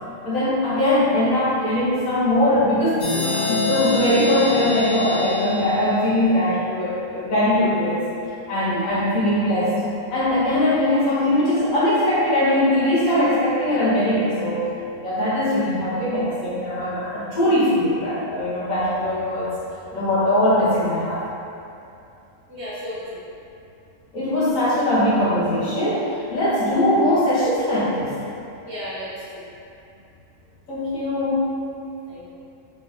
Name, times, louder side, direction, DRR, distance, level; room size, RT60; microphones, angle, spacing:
voice 1, 0.2-3.0 3.3-8.0 8.5-9.7 10.1-14.6 15.0-19.5 19.9-21.2 24.1-28.1 30.7-31.6, left 1 dB, 90° left, -10 dB, 1.7 m, -21 dB
sound 1, 3.0-6.6, left 3 dB, 45° left, 0.9 m, -26 dB
voice 2, 22.5-23.2 28.6-29.4 32.1-32.3, equal, 55° right, -11 dB, 1.2 m, -34 dB
4.1 x 3.5 x 3.3 m, 2.7 s
omnidirectional pair, 1.4 m